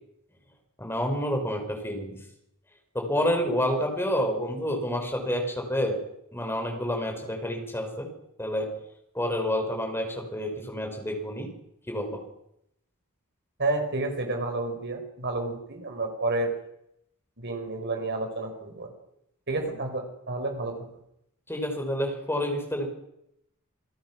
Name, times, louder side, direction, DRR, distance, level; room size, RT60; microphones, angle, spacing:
voice 1, 0.8-2.1 2.9-6.0 6.3-8.1 8.4-8.7 9.1-11.5 11.9-12.2 21.5-22.9, equal, 10° left, 3 dB, 5.4 m, -28 dB
voice 2, 13.6-16.5 17.4-18.9 19.5-20.9, right 2 dB, 50° right, 4 dB, 5.2 m, -30 dB
28.5 x 18.0 x 6.2 m, 0.78 s
head